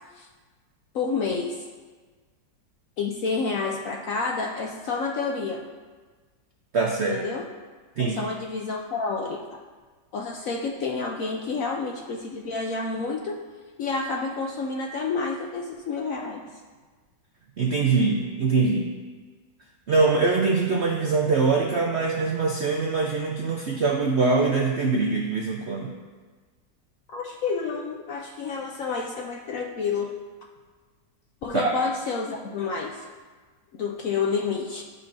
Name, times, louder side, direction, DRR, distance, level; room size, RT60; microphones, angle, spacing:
voice 1, 0.9-1.7 3.0-5.6 7.1-7.5 8.0-9.6 10.1-13.4 13.8-16.4 27.1-30.1 31.4-33.1 33.7-34.8, left 4 dB, 70° left, 1 dB, 0.8 m, -29 dB
voice 2, 6.7-7.2 8.0-8.3 17.6-18.9 19.9-25.9 31.5-31.7, right 4 dB, 70° right, 0 dB, 0.6 m, -23 dB
12.0 x 5.3 x 2.6 m, 1.4 s
omnidirectional pair, 2.0 m